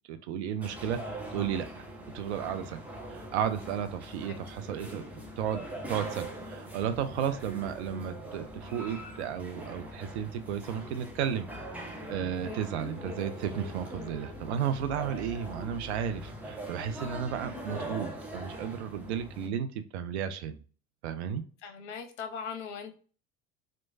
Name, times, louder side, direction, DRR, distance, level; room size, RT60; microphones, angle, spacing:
voice 1, 0.1-1.9 2.1-2.8 3.1-5.0 5.4-11.5 12.1-20.6 21.0-21.4, right 8 dB, 55° right, 9 dB, 0.5 m, -33 dB
sound 1, 0.6-19.5, right 1 dB, 5° right, 0.4 m, -42 dB
voice 2, 21.6-22.9, left 6 dB, 60° left, 6 dB, 0.7 m, -39 dB
3.0 x 2.1 x 2.4 m, 0.40 s
figure-of-eight pair, 70°, 40 cm